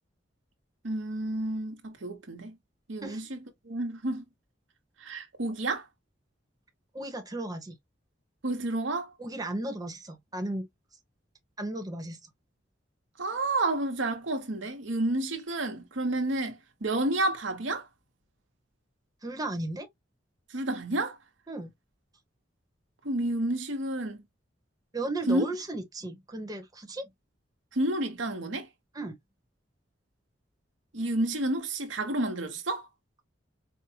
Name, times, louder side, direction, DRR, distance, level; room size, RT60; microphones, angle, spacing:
voice 1, 0.8-2.6 2.9-3.4 3.6-4.2 5.0-5.9 8.4-9.1 13.2-17.9 20.5-21.2 23.0-24.2 25.3-25.4 27.7-28.7 30.9-32.9, right 2 dB, 85° right, 1.1 m, -30 dB
voice 2, 6.9-7.7 9.2-10.7 11.6-12.2 19.2-19.9 21.5-21.7 24.9-27.1 28.9-29.2, right 2 dB, 20° right, 1.0 m, -35 dB
4.8 x 2.2 x 2.8 m
head